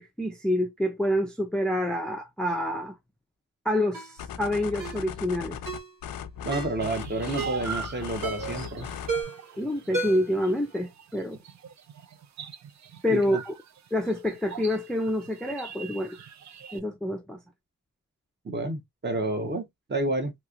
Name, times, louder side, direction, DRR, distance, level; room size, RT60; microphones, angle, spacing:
voice 1, 0.0-2.9 3.7-5.6 9.6-11.4 13.0-13.5 13.9-16.2 16.7-17.4, left 1 dB, ahead, 0.4 m, -27 dB
Ringtone, 3.9-4.2 4.8-5.0 5.7-5.9 6.5-6.8 7.4-7.7 8.2-8.6 9.1-9.5 9.9-10.4 10.7-10.8, right 3 dB, 70° right, 1.8 m, -32 dB
sound 1, 4.2-9.2, left 8 dB, 90° left, 0.5 m, -38 dB
voice 2, 6.4-8.9 13.1-13.4 18.4-20.3, right 2 dB, 30° right, 0.9 m, -30 dB
sound 2, 6.8-16.8, right 7 dB, 55° right, 0.5 m, -42 dB
3.0 x 2.9 x 2.4 m
wide cardioid pair, 120°, 35 cm